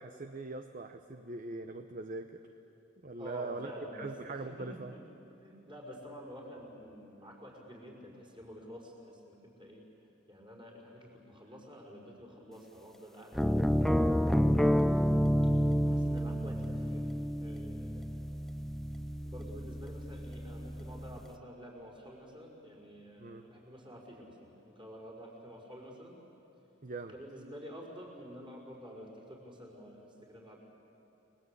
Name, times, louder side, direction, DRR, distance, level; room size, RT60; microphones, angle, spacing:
voice 1, 0.0-2.4 3.0-4.9 14.6-14.9 23.2-23.5 26.8-27.1, right 3 dB, 45° right, 7 dB, 0.9 m, -42 dB
voice 2, 3.2-5.0 5.4-9.8 10.3-13.8 14.3-15.2 15.8-17.0 17.4-18.1 19.2-26.2 27.1-30.6, equal, 25° right, -2 dB, 5.5 m, -49 dB
sound 1, 13.3-21.2, equal, ahead, 0.5 m, -30 dB
29.5 x 20.5 x 8.4 m, 2.9 s
head